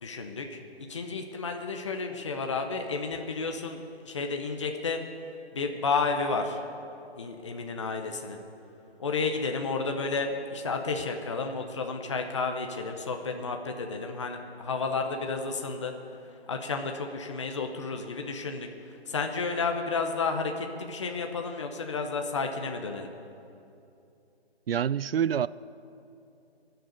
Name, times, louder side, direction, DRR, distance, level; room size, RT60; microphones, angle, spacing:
voice 1, 0.0-0.6 0.9-5.0 5.5-6.6 7.2-8.4 9.0-15.9 16.5-23.1, left 4 dB, 30° left, 4 dB, 0.8 m, -31 dB
voice 2, 24.7-25.5, right 9 dB, 65° right, 19 dB, 0.4 m, -26 dB
18.5 x 6.8 x 9.5 m, 2.7 s
hypercardioid pair, 170°, 32 cm